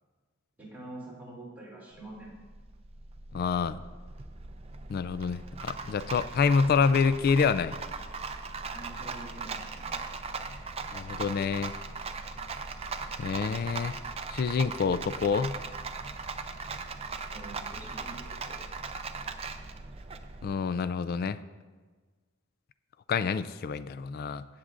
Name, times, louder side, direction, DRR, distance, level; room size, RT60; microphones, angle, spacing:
voice 1, 0.6-2.3 8.7-10.0 17.3-18.6, right 2 dB, 10° right, -6 dB, 2.9 m, -46 dB
Rattle, 1.9-20.5, right 4 dB, 30° right, 0.5 m, -39 dB
voice 2, 3.3-3.8 4.9-7.8 10.9-11.7 13.2-14.0 14.3-15.6 20.4-21.4 23.1-24.4, left 5 dB, 50° left, 14 dB, 0.3 m, -27 dB
16.0 x 7.4 x 2.5 m, 1.4 s
head